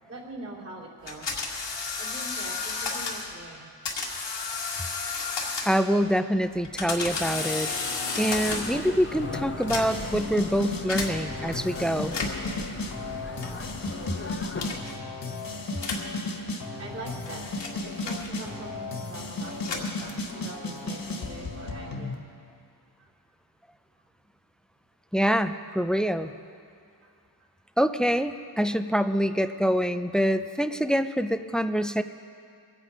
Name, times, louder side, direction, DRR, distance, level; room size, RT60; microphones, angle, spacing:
voice 1, 0.1-1.2 2.0-3.7 15.6-15.7 16.7-17.4 17.8-22.2 23.0-23.1 27.0-27.1, right 2 dB, 35° right, -4 dB, 3.2 m, -42 dB
sound 1, 1.1-3.3 3.8-6.0 6.5-8.9 9.5-10.2 10.9-11.1 12.0-12.5 13.4-13.7 14.6-15.0 15.8-16.1 16.9-18.7 19.4-20.5, left 4 dB, 85° left, 2.0 m, -32 dB
voice 2, 5.6-7.7 8.2-12.2 25.1-26.3 27.8-32.0, equal, ahead, 11 dB, 0.4 m, -25 dB
sound 2, 8.4-14.8, left 3 dB, 30° left, 1.0 m, -39 dB
sound 3, 9.2-22.2, left 2 dB, 55° left, 1.7 m, -35 dB
23.5 x 8.9 x 5.1 m, 2.3 s
wide cardioid pair, 115°, 42 cm